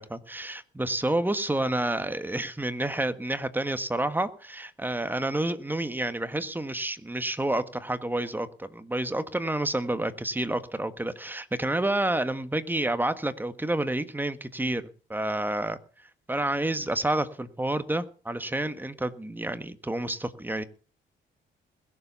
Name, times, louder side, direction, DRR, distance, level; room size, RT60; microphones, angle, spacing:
voice 1, 0.0-14.8 15.1-15.8 16.3-20.6, right 1 dB, 10° right, 11 dB, 1.5 m, -29 dB
21.0 x 7.5 x 6.9 m, 0.39 s
cardioid pair, 90°, 20 cm